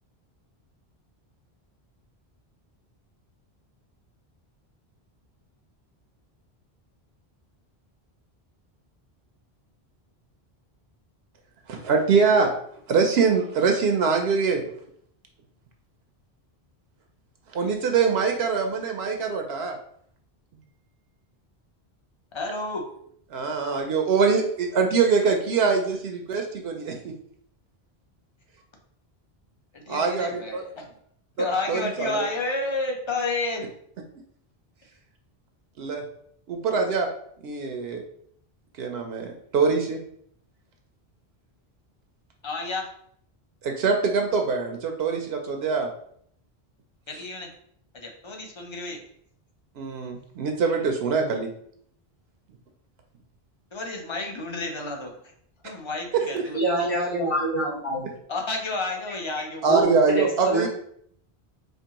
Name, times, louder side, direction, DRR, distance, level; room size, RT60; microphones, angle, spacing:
voice 1, 11.7-12.5 12.9-14.6 17.5-19.8 23.3-27.1 29.9-30.6 31.4-32.3 35.8-36.0 36.5-37.1 37.4-38.0 38.8-40.0 43.6-45.9 49.8-51.5 56.1-56.4 59.6-60.7, right 5 dB, 75° right, 4 dB, 0.8 m, -23 dB
voice 2, 22.3-22.8 29.7-30.9 31.4-33.7 42.4-42.9 47.1-47.5 48.0-49.0 53.7-55.1 55.6-56.9 58.3-59.6, left 3 dB, 35° left, 1 dB, 0.6 m, -31 dB
voice 3, 56.5-58.1 59.7-60.7, right 1 dB, 65° left, -4 dB, 1.5 m, -26 dB
4.4 x 2.7 x 2.8 m, 0.67 s
omnidirectional pair, 1.1 m